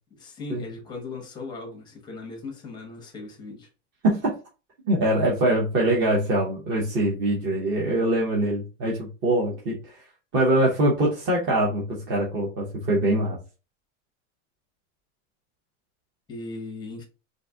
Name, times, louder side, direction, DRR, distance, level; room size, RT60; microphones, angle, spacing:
voice 1, 0.1-3.7 16.3-17.0, left 3 dB, 10° left, 0.6 m, -38 dB
voice 2, 4.9-10.0 10.3-13.4, right 1 dB, 30° right, 0.9 m, -23 dB
3.9 x 2.6 x 3.5 m
supercardioid pair, 175°, 39 cm